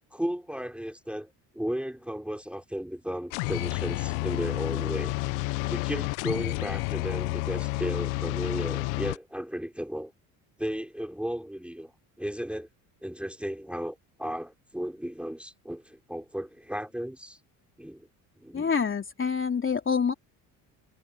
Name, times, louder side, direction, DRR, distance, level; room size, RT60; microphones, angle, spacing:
voice 1, 0.1-5.1 5.7-10.1 10.6-11.9 12.2-12.7 13.0-17.4 17.8-18.1 18.4-18.7, equal, 5° right, 4.4 m, -35 dB
sound 1, 3.3-9.2, left 23 dB, 85° left, 1.0 m, -30 dB
voice 2, 18.5-20.1, left 6 dB, 30° left, 3.0 m, -26 dB
hypercardioid pair, 70°, 39 cm